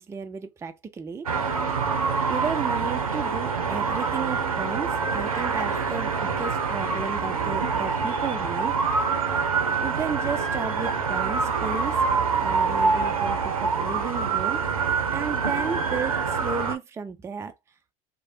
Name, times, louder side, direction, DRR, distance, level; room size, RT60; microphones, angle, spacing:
voice 1, 0.0-1.7 2.3-9.1 9.8-12.0 12.4-14.9 15.1-17.5, right 6 dB, 15° right, 0.5 m, -34 dB
sound 1, 1.3-16.8, right 5 dB, 85° right, 0.6 m, -25 dB
3.2 x 2.2 x 2.6 m
figure-of-eight pair, 75°, 18 cm